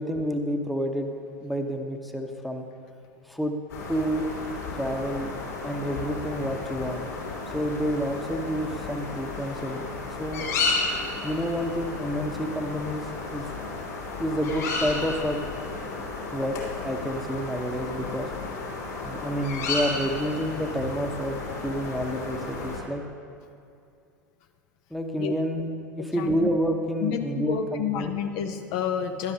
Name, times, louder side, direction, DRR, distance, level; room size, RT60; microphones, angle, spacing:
voice 1, 0.0-2.7 3.3-3.5 3.9-4.3 4.7-5.3 5.6-7.0 7.5-9.9 10.2-10.5 11.2-13.0 13.3-13.5 14.2-15.4 16.3-16.6 16.8-18.3 19.0-23.0 24.9-25.7 25.9-28.1, equal, ahead, 4 dB, 0.9 m, -29 dB
sound 1, 3.7-22.8, left 3 dB, 65° left, 2.8 m, -33 dB
voice 2, 26.0-26.5 27.0-29.3, left 8 dB, 45° left, 7 dB, 0.6 m, -30 dB
16.0 x 12.0 x 2.8 m, 2.5 s
figure-of-eight pair, 85°, 10 cm